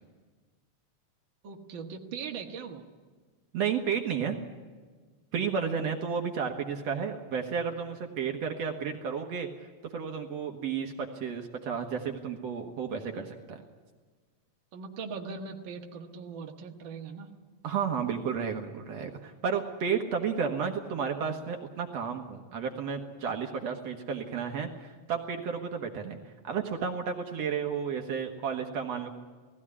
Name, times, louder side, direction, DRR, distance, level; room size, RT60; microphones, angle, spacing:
voice 1, 1.4-2.8 11.0-11.1 14.7-17.3, right 5 dB, 45° right, 2 dB, 2.0 m, -40 dB
voice 2, 3.5-4.4 5.3-9.5 9.9-13.6 17.6-26.2 26.4-29.1, right 6 dB, 65° right, 3 dB, 2.4 m, -32 dB
18.5 x 16.0 x 9.9 m, 1.4 s
omnidirectional pair, 3.4 m